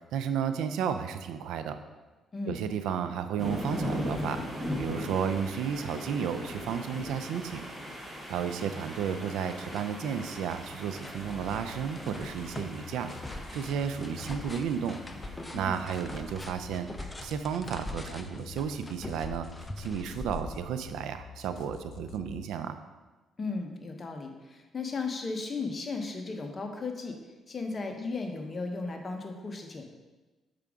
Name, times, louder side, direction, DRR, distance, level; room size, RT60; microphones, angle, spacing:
voice 1, 0.1-1.8 2.5-4.4 4.8-7.6 8.3-13.1 13.5-15.0 15.5-19.5 19.8-22.8, right 7 dB, 85° right, 10 dB, 0.4 m, -33 dB
voice 2, 2.3-2.6 15.5-15.7 16.1-16.2 23.4-27.2 27.5-29.8, left 3 dB, 35° left, 3 dB, 0.9 m, -35 dB
sound 1, 3.4-16.8, equal, 10° right, 1.6 m, -39 dB
sound 2, 7.8-7.9 8.3-9.0 9.3-20.9, left 2 dB, 15° left, 0.6 m, -43 dB
sound 3, 11.1-22.4, left 9 dB, 65° left, 0.3 m, -49 dB
6.7 x 5.0 x 3.6 m, 1.2 s
cardioid pair, 90°, 0 cm